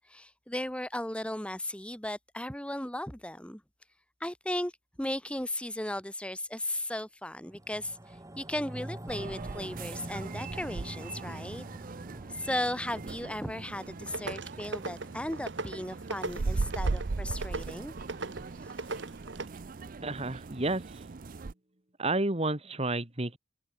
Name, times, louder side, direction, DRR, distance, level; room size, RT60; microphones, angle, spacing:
voice 1, 0.1-3.6 4.2-4.7 5.0-11.6 12.3-17.9, left 1 dB, 5° left, 3.0 m, -36 dB
sound 1, 7.4-18.0 18.4-18.5, right 1 dB, 20° right, 1.5 m, -46 dB
sound 2, 9.1-21.5, right 3 dB, 50° right, 0.5 m, -38 dB
sound 3, 13.8-19.5, right 3 dB, 85° right, 2.4 m, -40 dB
voice 2, 20.0-21.0 22.0-23.4, right 2 dB, 35° right, 2.3 m, -31 dB
head